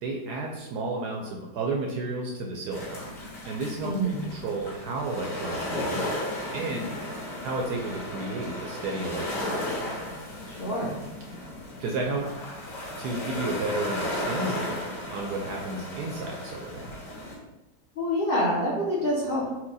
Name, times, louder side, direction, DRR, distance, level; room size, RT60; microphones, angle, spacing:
voice 1, 0.0-3.1 3.5-3.9 4.2-6.0 6.5-6.9 7.4-9.7 11.8-12.2 13.0-16.9, right 3 dB, 75° right, 0 dB, 0.9 m, -32 dB
sound 1, 2.7-17.4, left 1 dB, 50° left, 1.2 m, -35 dB
voice 2, 3.8-4.2 10.5-11.0 18.0-19.5, equal, 75° left, -6 dB, 0.5 m, -26 dB
4.5 x 2.2 x 4.0 m, 1.1 s
omnidirectional pair, 2.1 m